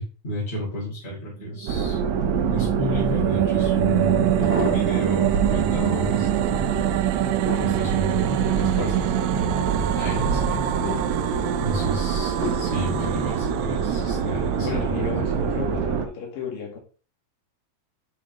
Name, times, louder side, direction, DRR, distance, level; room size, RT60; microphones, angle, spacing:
voice 1, 0.0-6.7 7.6-9.1 9.9-10.6 11.6-15.4, equal, 20° left, 2.9 m, -31 dB
Ghostly scary noise, 1.4-14.8, right 15 dB, 90° right, 1.7 m, -26 dB
sound 1, 1.7-16.1, right 6 dB, 70° right, 1.8 m, -26 dB
sound 2, 4.2-5.2 5.7-6.3 6.9-10.3 10.7-11.2 11.8-13.2 13.9-14.3 14.6-14.7, right 1 dB, 15° right, 2.8 m, -34 dB
voice 2, 14.6-16.8, left 6 dB, 70° left, 3.7 m, -33 dB
9.6 x 4.9 x 3.2 m
omnidirectional pair, 4.1 m